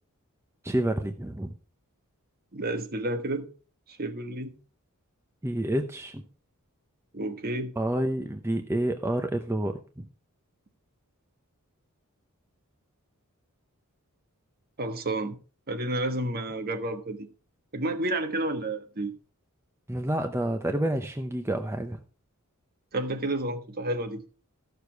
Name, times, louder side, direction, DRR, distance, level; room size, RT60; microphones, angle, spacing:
voice 1, 0.6-1.5 5.4-6.2 7.8-10.0 19.9-22.0, right 1 dB, 10° right, 0.7 m, -29 dB
voice 2, 2.5-3.5 3.9-4.5 7.1-7.7 14.8-15.4 15.7-17.3 17.7-19.1 22.9-24.2, right 1 dB, 45° right, 1.4 m, -30 dB
14.0 x 6.8 x 4.6 m
head